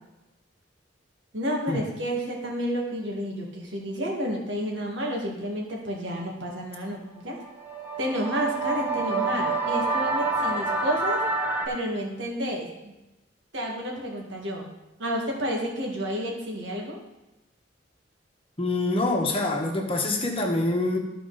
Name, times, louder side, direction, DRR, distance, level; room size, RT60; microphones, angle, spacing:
voice 1, 1.3-7.4 8.0-11.2 11.7-12.9 13.5-14.7 15.0-17.0, equal, 90° right, -1 dB, 2.0 m, -30 dB
sound 1, 7.4-11.7, right 3 dB, 10° right, 0.8 m, -27 dB
voice 2, 18.6-21.0, left 2 dB, 30° left, 1 dB, 1.2 m, -25 dB
13.5 x 4.5 x 4.1 m, 0.99 s
head